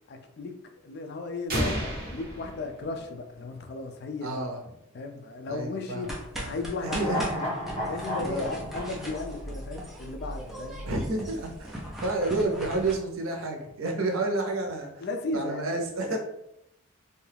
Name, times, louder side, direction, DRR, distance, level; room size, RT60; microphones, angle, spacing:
voice 1, 0.1-0.6 0.8-4.4 4.9-6.1 6.5-7.5 7.9-10.9 14.0-14.1 15.0-15.7 16.1-16.2, left 3 dB, 55° left, 6 dB, 0.4 m, -35 dB
sound 1, 1.5-3.4, right 1 dB, 45° right, 0.8 m, -32 dB
voice 2, 4.2-4.6 5.5-6.1 6.4-6.5 6.8-7.3 8.2-8.7 10.9-15.1 15.3-16.2, right 2 dB, 85° right, 2 dB, 0.6 m, -30 dB
sound 2, 6.0-12.9, equal, ahead, 0.5 m, -39 dB
sound 3, 6.8-10.2 10.5-10.6, left 1 dB, 30° left, 1.0 m, -34 dB
2.7 x 2.3 x 3.3 m, 0.79 s
head